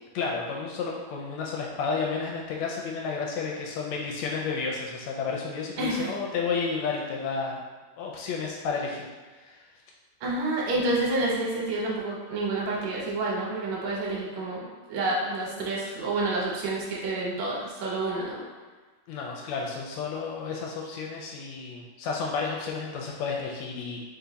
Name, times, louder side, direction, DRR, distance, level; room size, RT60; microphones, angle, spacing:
voice 1, 0.1-7.6 8.0-9.0 9.3-9.7 19.1-24.0, left 5 dB, 80° left, -1 dB, 1.6 m, -31 dB
voice 2, 5.8-6.1 10.2-18.4, right 2 dB, 70° right, -4 dB, 2.0 m, -29 dB
5.0 x 2.4 x 3.9 m, 1.3 s
omnidirectional pair, 3.4 m